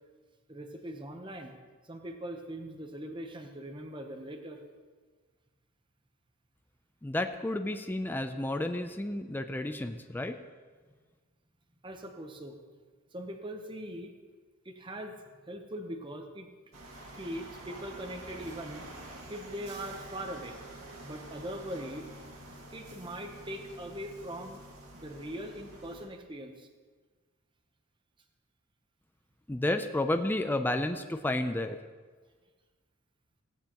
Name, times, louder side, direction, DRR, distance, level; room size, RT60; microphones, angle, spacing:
voice 1, 0.5-1.5 1.8-4.6 11.8-12.6 13.1-14.1 14.6-15.2 15.5-16.5 17.1-18.9 19.2-20.6 21.0-22.1 22.7-24.6 24.9-26.7, right 1 dB, 20° right, 4 dB, 0.8 m, -41 dB
voice 2, 7.0-10.4 29.5-31.8, left 1 dB, 10° left, 7 dB, 0.3 m, -31 dB
sound 1, 16.7-26.1, right 1 dB, 85° right, 2.0 m, -48 dB
16.0 x 9.2 x 2.9 m, 1.5 s
head